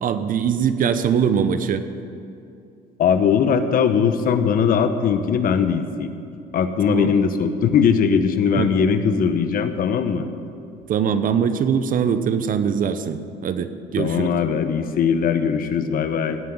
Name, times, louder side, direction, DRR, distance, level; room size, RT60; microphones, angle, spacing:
voice 1, 0.0-1.8 6.9-7.1 8.6-8.7 10.9-14.3, right 7 dB, 55° right, 10 dB, 0.9 m, -22 dB
voice 2, 3.0-6.1 6.5-10.3 14.0-16.4, left 6 dB, 60° left, 9 dB, 1.0 m, -20 dB
17.0 x 5.8 x 9.4 m, 2.5 s
cardioid pair, 110°, 17 cm